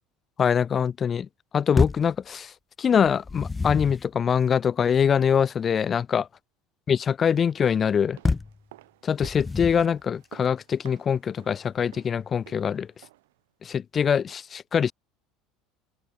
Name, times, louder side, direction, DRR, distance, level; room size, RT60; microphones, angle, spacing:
voice 1, 0.4-1.3 1.5-2.5 2.8-6.3 6.9-8.2 9.0-12.9 13.6-14.9, left 7 dB, 35° left, 0.4 m, -23 dB
sound 1, 1.8-2.2 3.1-4.1 8.2-8.6 9.2-10.0, left 4 dB, 20° left, 1.2 m, -27 dB
sound 2, 7.4-13.4 13.7-13.8, right 18 dB, 80° right, 6.7 m, -52 dB
open air
hypercardioid pair, 80°, 0 cm